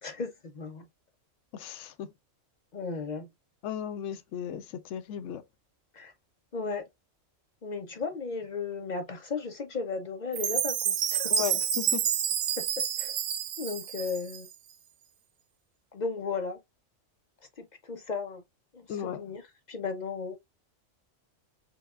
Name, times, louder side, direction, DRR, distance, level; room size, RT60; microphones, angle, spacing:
voice 1, 0.0-0.9 2.7-3.3 5.9-6.1 6.5-6.9 7.6-11.5 12.6-13.2 13.6-14.5 15.9-16.6 17.6-18.4 18.7-20.4, left 4 dB, 55° left, 0.5 m, -35 dB
voice 2, 1.6-2.1 3.6-4.6 4.9-5.4 11.3-11.6 11.9-12.0 18.9-19.2, left 10 dB, 75° left, 0.9 m, -35 dB
Chime, 10.3-14.5, right 8 dB, 80° right, 1.0 m, -29 dB
5.6 x 2.3 x 2.3 m
omnidirectional pair, 1.3 m